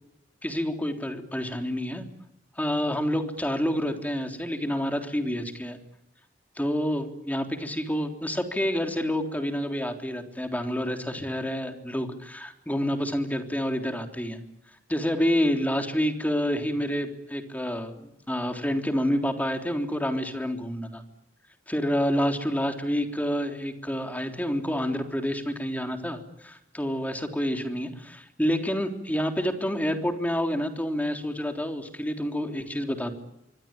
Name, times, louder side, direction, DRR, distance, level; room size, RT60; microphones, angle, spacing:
voice 1, 0.4-2.0 2.6-5.8 6.6-14.4 14.9-21.0 21.7-33.1, equal, 10° left, 5 dB, 3.5 m, -28 dB
25.0 x 24.0 x 8.9 m, 0.86 s
head